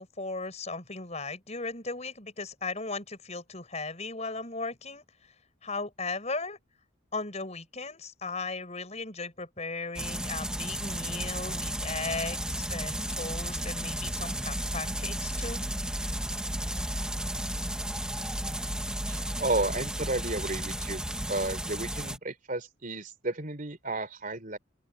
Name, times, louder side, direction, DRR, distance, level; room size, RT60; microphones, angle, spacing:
voice 1, 0.0-5.0 5.6-6.6 7.1-15.6, left 3 dB, 35° left, 6.5 m, -37 dB
sound 1, 10.0-22.2, right 1 dB, 5° right, 1.3 m, -33 dB
voice 2, 19.1-21.0 21.3-24.6, right 2 dB, 45° right, 3.6 m, -32 dB
open air
head